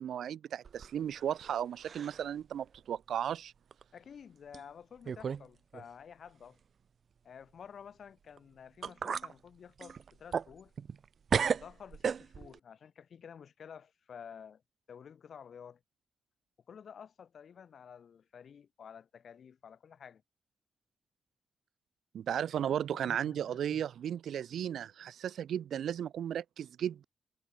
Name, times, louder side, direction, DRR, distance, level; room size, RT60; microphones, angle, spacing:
voice 1, 0.0-3.5 22.1-27.0, right 9 dB, 80° right, 3.7 m, -35 dB
sound 1, 0.7-1.6 1.8-2.3 2.7-2.8 3.7-3.8 4.5-4.6 5.1-5.5 5.7-5.8 8.4-8.5 8.8-9.3 9.8-11.0 11.3-12.6, right 6 dB, 60° right, 2.2 m, -34 dB
voice 2, 3.9-6.6 7.2-10.7 11.5-14.6 14.9-15.8 16.7-20.2 22.6-23.8, left 7 dB, 65° left, 7.9 m, -51 dB
cardioid pair, 60°, 0 cm